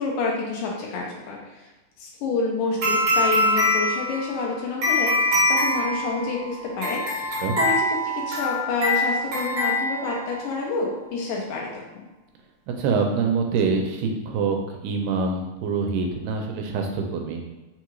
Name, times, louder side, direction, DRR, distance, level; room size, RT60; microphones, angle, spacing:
voice 1, 0.0-1.7 2.0-7.3 7.6-11.8, left 3 dB, 80° left, -2 dB, 2.1 m, -28 dB
sound 1, 2.8-10.5, left 1 dB, 65° right, 1.2 m, -24 dB
voice 2, 12.8-14.6 14.8-17.4, right 4 dB, 85° right, 3 dB, 2.3 m, -25 dB
5.6 x 2.3 x 3.0 m, 1.1 s
omnidirectional pair, 3.9 m